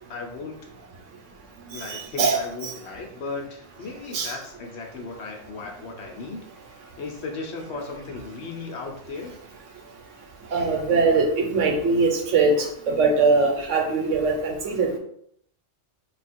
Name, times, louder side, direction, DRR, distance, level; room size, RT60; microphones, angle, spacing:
voice 1, 0.1-0.6 1.7-9.4, left 3 dB, 65° left, 2 dB, 1.0 m, -36 dB
voice 2, 1.7-2.7 4.1-4.3 10.5-15.0, right 4 dB, 80° right, 1 dB, 1.2 m, -22 dB
3.7 x 2.3 x 4.2 m, 0.67 s
omnidirectional pair, 1.3 m